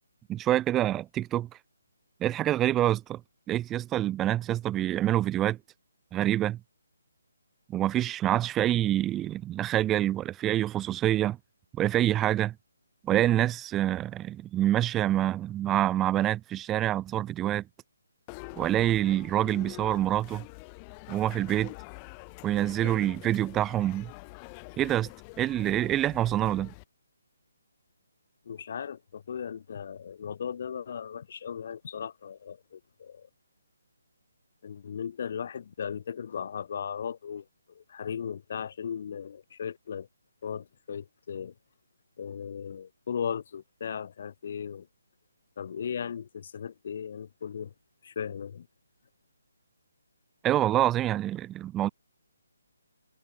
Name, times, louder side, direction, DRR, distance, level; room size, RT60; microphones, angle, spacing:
voice 1, 0.3-1.5 2.2-3.2 3.5-5.6 6.1-6.6 7.7-11.4 11.7-12.5 13.0-17.6 18.6-20.4 21.1-21.7 22.4-24.1 24.8-25.1 25.4-26.7 50.4-51.9, right 13 dB, 15° right, 0.7 m, -26 dB
sound 1, 18.3-26.8, left 34 dB, 20° left, 3.8 m, -45 dB
voice 2, 28.5-33.3 34.6-40.1 40.4-41.5 42.2-44.9 45.6-47.7 48.0-48.7, left 7 dB, 45° left, 7.4 m, -37 dB
figure-of-eight pair, 145°, 0 cm